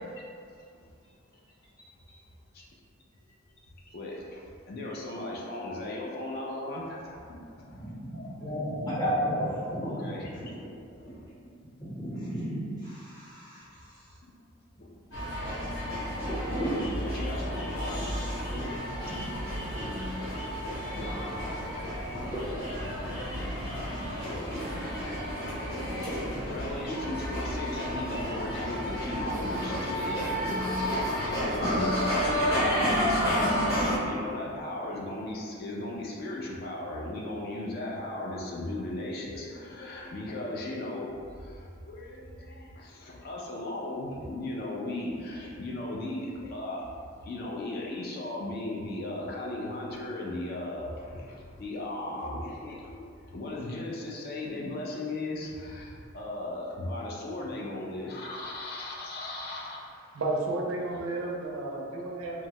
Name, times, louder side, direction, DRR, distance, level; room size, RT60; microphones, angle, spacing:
voice 1, 1.8-2.2 7.7-10.2 10.5-10.7 11.0-11.1 11.8-14.0 16.4-16.7 17.9-18.6 19.7-20.3 20.7-20.9 22.3-22.5 25.9-26.5, equal, 20° left, -10 dB, 0.7 m, -35 dB
voice 2, 3.9-8.8 9.8-10.5 10.9-11.3 14.2-14.3 14.8-14.9 16.2-16.4 16.9-18.5 24.2-24.5 25.7-25.8 26.5-59.8, left 1 dB, 45° left, -3 dB, 0.3 m, -37 dB
sound 1, 15.1-34.0, equal, 75° left, 1.2 m, -31 dB
voice 3, 60.1-62.5, right 2 dB, 80° right, -1 dB, 0.4 m, -32 dB
2.6 x 2.1 x 2.8 m, 2.3 s
head